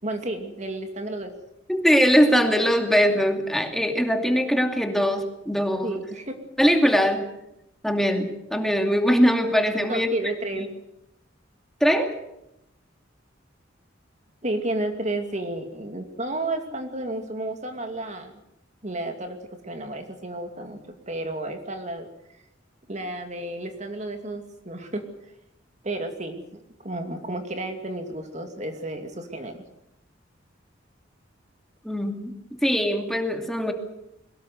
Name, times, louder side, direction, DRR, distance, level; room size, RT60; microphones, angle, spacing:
voice 1, 0.0-1.3 5.8-6.4 9.9-10.7 14.4-18.4 18.8-19.4 19.6-20.8 21.1-22.1 22.9-25.1 25.8-29.6, right 1 dB, 40° right, 5 dB, 2.5 m, -32 dB
voice 2, 1.7-6.0 6.6-7.2 7.8-10.1 11.8-12.1 31.8-33.7, equal, ahead, 4 dB, 2.6 m, -21 dB
22.5 x 20.0 x 8.0 m, 0.84 s
head